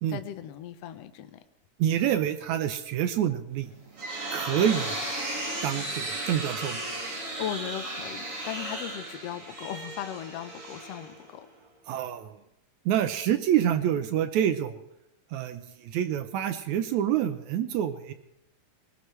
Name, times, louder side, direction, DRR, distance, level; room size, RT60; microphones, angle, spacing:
voice 1, 0.1-1.4 7.4-11.5, left 10 dB, 75° left, 10 dB, 1.5 m, -37 dB
voice 2, 1.8-3.7 4.3-5.0 5.6-6.8 11.9-12.4 12.9-14.8 15.3-18.1, right 10 dB, 80° right, 10 dB, 1.8 m, -27 dB
sound 1, 3.6-11.5, right 2 dB, 40° right, 3.7 m, -35 dB
19.5 x 19.0 x 3.3 m, 0.84 s
omnidirectional pair, 4.0 m